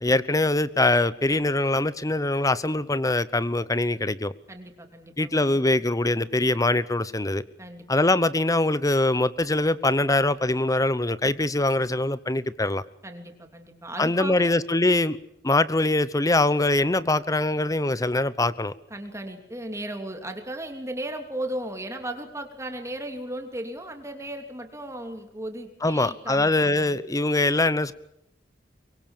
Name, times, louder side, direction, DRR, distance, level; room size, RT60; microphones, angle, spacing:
voice 1, 0.0-4.3 5.2-7.4 7.9-12.8 14.0-15.2 15.4-18.7 25.8-27.9, left 2 dB, 20° left, 17 dB, 0.9 m, -23 dB
voice 2, 4.5-5.6 7.6-7.8 13.0-14.5 18.9-27.0, right 1 dB, 15° right, 5 dB, 3.0 m, -36 dB
24.0 x 23.0 x 7.3 m, 0.81 s
head